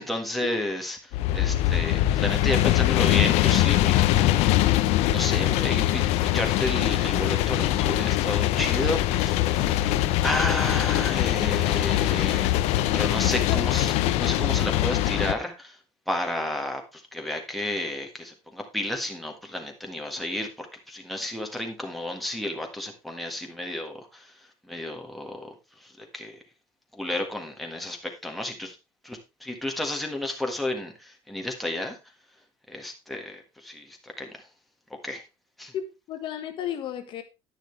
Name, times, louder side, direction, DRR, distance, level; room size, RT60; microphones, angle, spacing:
voice 1, 0.0-12.6 12.9-15.8 16.1-26.4 27.0-28.8 29.0-32.0 32.7-34.4 35.0-35.2 35.6-35.7, left 1 dB, ahead, 1.6 m, -32 dB
sound 1, 1.1-15.3, left 14 dB, 65° left, 0.8 m, -23 dB
voice 2, 35.7-37.2, left 9 dB, 45° left, 1.5 m, -33 dB
10.5 x 10.0 x 3.3 m
cardioid pair, 155°, 12 cm